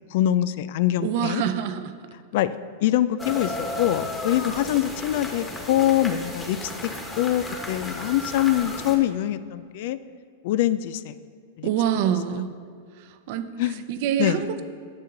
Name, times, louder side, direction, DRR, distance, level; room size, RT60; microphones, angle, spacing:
voice 1, 0.1-1.4 2.3-6.9 7.2-10.0 10.4-11.1 11.6-11.7 13.6-13.8 14.2-14.4, left 12 dB, 60° left, 15 dB, 0.3 m, -24 dB
voice 2, 1.0-1.9 11.6-12.5 13.0-13.5 13.9-14.6, right 9 dB, 55° right, 10 dB, 0.6 m, -25 dB
sound 1, 3.2-9.0, left 2 dB, 10° left, 1.5 m, -34 dB
9.4 x 6.7 x 3.9 m, 2.1 s
hypercardioid pair, 125°, 0 cm